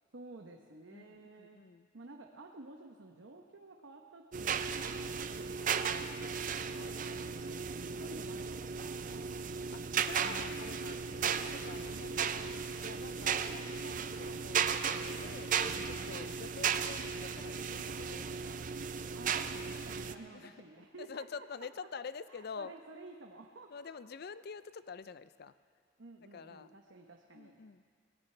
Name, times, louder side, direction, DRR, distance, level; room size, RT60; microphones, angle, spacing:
voice 1, 0.1-1.6 1.9-6.9 7.2-9.3 10.2-10.7 15.7-16.5 19.1-21.5 22.3-24.2 26.0-27.6, right 2 dB, 70° right, 2 dB, 0.9 m, -53 dB
voice 2, 0.9-1.9 6.8-8.1 9.7-15.5 15.9-18.6 20.3-20.5 21.0-22.7 23.7-25.5 26.3-26.8 27.3-27.8, left 5 dB, 50° left, 14 dB, 0.4 m, -48 dB
sound 1, 4.3-20.1, right 6 dB, 40° right, 0.5 m, -36 dB
24.0 x 18.0 x 3.3 m, 2.1 s
head